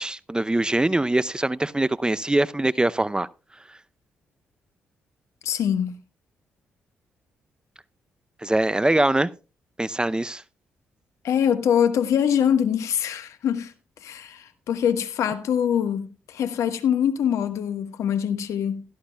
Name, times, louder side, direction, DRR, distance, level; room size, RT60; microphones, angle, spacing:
voice 1, 0.0-3.3 8.4-9.3 9.8-10.4, right 1 dB, 15° right, 0.6 m, -23 dB
voice 2, 5.4-5.9 11.2-13.7 14.0-18.8, left 8 dB, 70° left, 1.3 m, -24 dB
17.0 x 13.0 x 2.3 m
hypercardioid pair, 40°, 5 cm